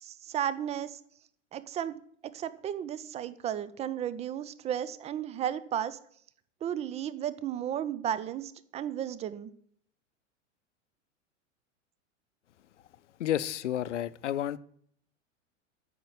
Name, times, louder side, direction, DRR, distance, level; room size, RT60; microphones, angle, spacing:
voice 1, 0.0-1.0 1.5-2.0 2.3-6.0 6.6-9.5, right 10 dB, 15° right, 0.5 m, -34 dB
voice 2, 13.2-14.6, left 11 dB, 65° left, 0.7 m, -31 dB
9.3 x 6.0 x 8.2 m
figure-of-eight pair, 90°, 38 cm